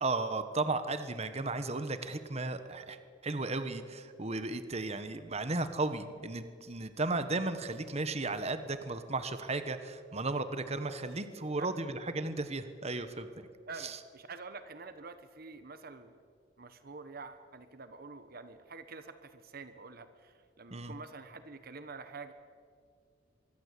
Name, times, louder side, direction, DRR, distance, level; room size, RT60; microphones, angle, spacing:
voice 1, 0.0-3.0 3.2-13.5 13.8-14.0 20.7-20.9, right 3 dB, 35° right, 10 dB, 1.3 m, -35 dB
voice 2, 11.6-11.9 13.7-16.2 16.6-22.3, right 4 dB, 55° right, 10 dB, 1.2 m, -47 dB
25.0 x 22.0 x 8.5 m, 2.2 s
head